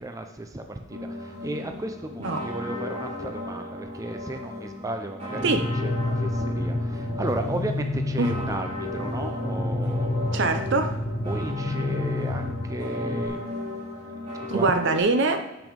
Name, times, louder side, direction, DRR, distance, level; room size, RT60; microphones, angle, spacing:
voice 1, 0.0-10.6 11.3-14.7, right 2 dB, 15° right, 5 dB, 0.5 m, -35 dB
sound 1, 0.9-15.0, left 2 dB, 35° right, 3.0 m, -36 dB
sound 2, 5.3-13.3, left 2 dB, 25° left, 0.9 m, -29 dB
voice 2, 10.3-11.0 14.5-15.5, right 3 dB, 60° right, 7 dB, 0.7 m, -23 dB
6.9 x 6.1 x 5.2 m, 1.1 s
head